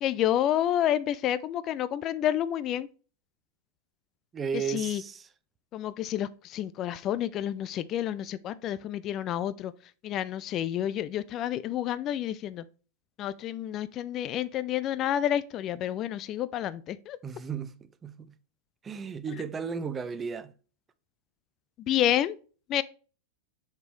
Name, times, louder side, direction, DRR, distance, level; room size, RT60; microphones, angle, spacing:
voice 1, 0.0-2.9 4.7-5.0 5.7-9.7 10.0-12.6 13.2-17.2 21.9-22.4 22.7-22.8, left 11 dB, 35° left, 0.3 m, -29 dB
voice 2, 4.3-5.3 17.2-17.7 18.0-18.3 18.8-20.5, right 6 dB, 20° right, 0.5 m, -34 dB
6.8 x 4.4 x 3.1 m
figure-of-eight pair, 90°, 0 cm